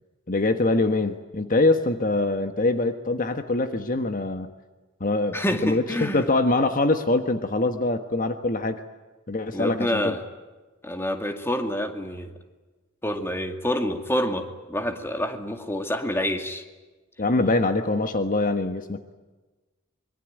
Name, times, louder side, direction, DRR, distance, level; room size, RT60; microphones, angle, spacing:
voice 1, 0.3-4.5 5.0-8.8 9.3-10.2 17.2-19.1, left 2 dB, 40° left, 8 dB, 1.4 m, -24 dB
voice 2, 5.3-6.3 9.5-10.2 10.8-12.3 13.0-16.6, left 1 dB, 10° left, 6 dB, 2.2 m, -27 dB
25.0 x 22.5 x 9.2 m, 1.2 s
head